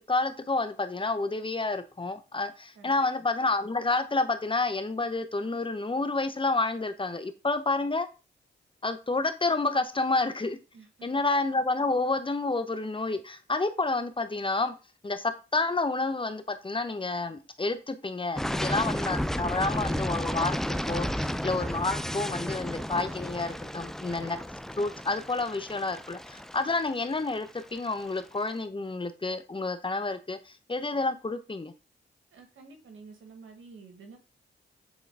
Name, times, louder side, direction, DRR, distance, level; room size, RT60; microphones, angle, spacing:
voice 1, 0.1-8.1 8.8-10.6 11.0-14.7 15.0-24.4 24.8-31.7, left 3 dB, 25° left, 0.9 m, -29 dB
voice 2, 10.7-11.1 32.3-34.2, right 4 dB, 90° right, 1.5 m, -50 dB
sound 1, 18.4-28.2, equal, ahead, 0.4 m, -33 dB
7.3 x 3.8 x 3.5 m
cardioid pair, 60°, 20 cm